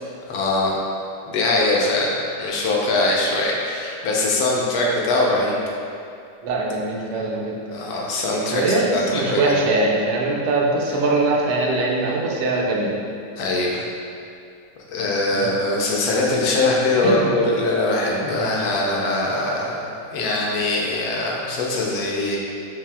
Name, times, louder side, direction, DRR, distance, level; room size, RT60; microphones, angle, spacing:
voice 1, 0.3-0.7 1.3-5.5 7.7-9.5 13.4-13.8 14.9-22.4, left 2 dB, 70° left, -3 dB, 1.1 m, -22 dB
voice 2, 6.4-7.6 8.4-13.0 15.3-15.5 17.0-17.3, right 2 dB, 75° right, -2 dB, 1.1 m, -22 dB
4.9 x 2.7 x 3.5 m, 2.5 s
omnidirectional pair, 1.7 m